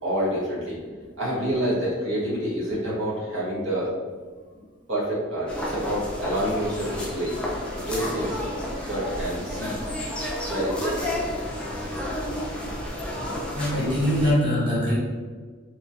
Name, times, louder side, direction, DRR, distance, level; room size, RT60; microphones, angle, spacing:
voice 1, 0.0-3.9 4.5-7.4 7.7-8.5 8.8-10.1 10.4-11.2, equal, 70° right, -7 dB, 0.9 m, -28 dB
sound 1, 5.5-14.3, left 1 dB, 5° left, 0.4 m, -31 dB
voice 2, 13.5-14.9, equal, 25° right, -9 dB, 1.0 m, -23 dB
2.9 x 2.3 x 2.6 m, 1.5 s
head